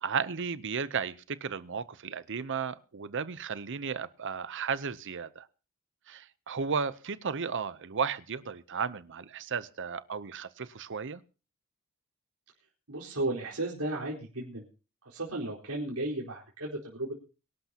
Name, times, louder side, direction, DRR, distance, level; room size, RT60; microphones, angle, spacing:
voice 1, 0.0-5.5 6.1-11.2, right 6 dB, 55° right, 0.7 m, -34 dB
voice 2, 12.9-14.6 15.0-17.1, right 2 dB, 90° right, 4.3 m, -34 dB
24.0 x 12.0 x 2.9 m
head